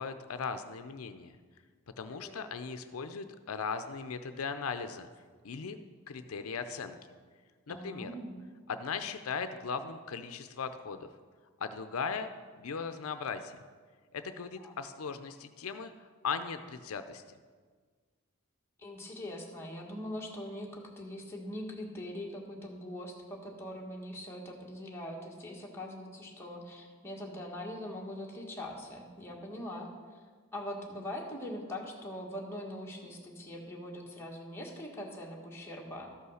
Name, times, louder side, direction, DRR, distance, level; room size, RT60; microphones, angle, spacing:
voice 1, 0.0-1.3 2.0-5.1 5.4-5.8 6.1-7.0 7.7-8.1 8.7-11.1 11.6-12.3 12.6-13.6 14.1-15.9 16.2-17.2, left 5 dB, 85° left, 9 dB, 0.6 m, -38 dB
voice 2, 2.1-2.4 7.7-8.4 14.6-14.7 18.8-29.9 30.5-36.1, left 1 dB, 10° left, -2 dB, 1.5 m, -42 dB
13.0 x 5.6 x 6.4 m, 1.5 s
head